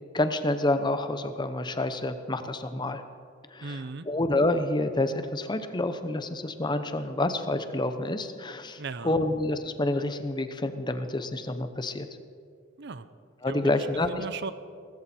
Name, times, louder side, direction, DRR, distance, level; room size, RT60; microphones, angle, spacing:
voice 1, 0.1-3.0 3.5-3.7 4.1-12.1 13.4-14.1, left 2 dB, 20° left, 9 dB, 0.8 m, -28 dB
voice 2, 3.6-4.1 8.8-9.2 12.8-13.1 13.5-14.5, right 4 dB, 60° right, 13 dB, 0.7 m, -37 dB
18.5 x 15.0 x 4.4 m, 2.2 s
head